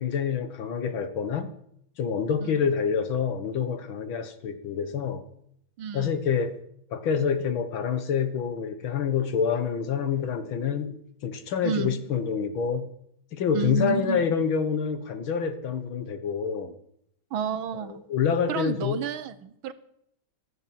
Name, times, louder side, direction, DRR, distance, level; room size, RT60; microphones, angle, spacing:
voice 1, 0.0-1.5 2.0-5.2 5.9-6.6 6.9-12.9 13.3-16.8 17.8-19.0, left 7 dB, 70° left, 10 dB, 2.1 m, -27 dB
voice 2, 5.8-6.2 11.6-12.0 13.5-14.3 17.3-18.0 18.5-19.7, right 8 dB, 75° right, 13 dB, 1.7 m, -31 dB
15.0 x 12.5 x 7.5 m, 0.73 s
omnidirectional pair, 2.3 m